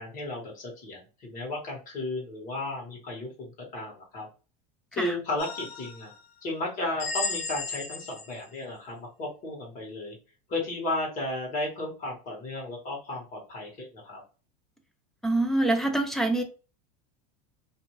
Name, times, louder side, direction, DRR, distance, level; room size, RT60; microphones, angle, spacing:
voice 1, 0.0-4.3 4.9-6.1 6.4-10.1 10.5-14.2, left 2 dB, 40° left, 1.3 m, -34 dB
sound 1, 5.4-6.2 7.0-8.4, left 4 dB, 60° left, 1.2 m, -34 dB
voice 2, 15.2-16.4, right 2 dB, ahead, 0.3 m, -25 dB
2.6 x 2.3 x 3.0 m
supercardioid pair, 140°, 21 cm